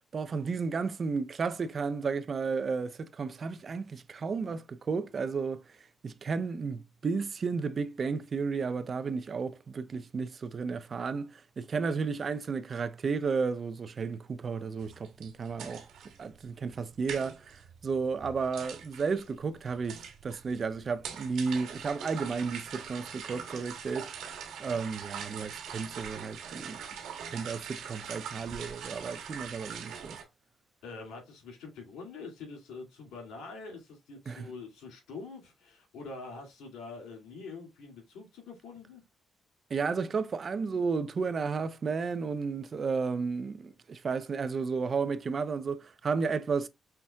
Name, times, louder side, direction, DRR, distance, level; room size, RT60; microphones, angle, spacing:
voice 1, 0.1-5.6 6.0-15.9 16.2-17.5 17.8-24.1 24.6-26.8 27.3-30.2 34.3-34.5 39.7-46.7, right 5 dB, 45° right, 0.5 m, -33 dB
sound 1, 14.8-30.2, right 7 dB, 80° right, 1.2 m, -43 dB
voice 2, 30.8-39.0, left 4 dB, 90° left, 2.2 m, -45 dB
5.7 x 3.5 x 2.2 m
cardioid pair, 90°, 0 cm